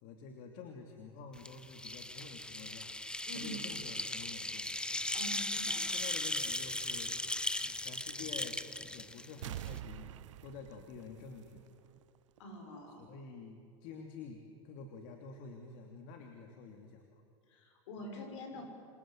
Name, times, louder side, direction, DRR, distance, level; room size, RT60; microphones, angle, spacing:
voice 1, 0.0-2.9 3.3-4.7 5.9-7.1 7.7-8.6 8.9-10.1 10.4-11.6 13.0-17.2 18.5-18.6, left 5 dB, 60° left, 3 dB, 3.0 m, -49 dB
sound 1, 1.4-9.8, left 1 dB, 5° left, 1.2 m, -38 dB
voice 2, 5.1-5.9 12.4-13.0 17.5-18.6, left 1 dB, 75° left, 4 dB, 6.8 m, -46 dB
sound 2, 9.4-12.0 12.4-12.5, right 12 dB, 80° right, 0.8 m, -46 dB
27.5 x 27.0 x 7.8 m, 2.5 s
hypercardioid pair, 95°, 16 cm